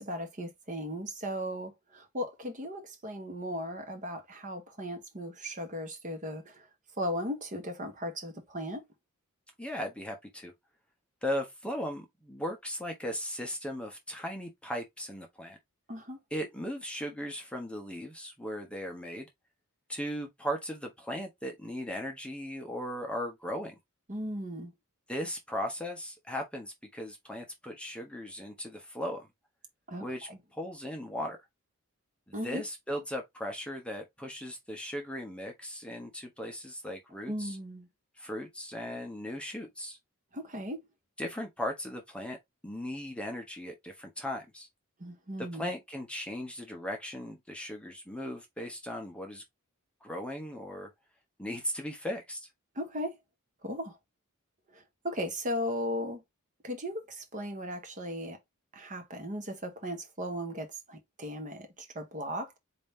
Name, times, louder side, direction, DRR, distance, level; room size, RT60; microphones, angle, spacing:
voice 1, 0.0-6.7 7.0-8.9 15.9-16.2 24.1-24.7 29.9-30.4 32.3-32.6 37.3-37.9 40.3-40.8 45.0-45.7 52.7-53.2 53.6-54.0 54.7-56.2 56.6-58.4 58.7-62.5, equal, 35° right, 1.1 m, -37 dB
voice 2, 9.6-10.5 11.2-15.6 16.3-19.3 19.9-23.7 25.1-29.3 30.0-31.4 32.3-37.6 38.2-40.0 41.2-42.4 42.6-44.7 45.4-49.4 50.0-50.9 51.4-52.5, equal, 5° left, 0.8 m, -37 dB
4.2 x 2.7 x 3.5 m
head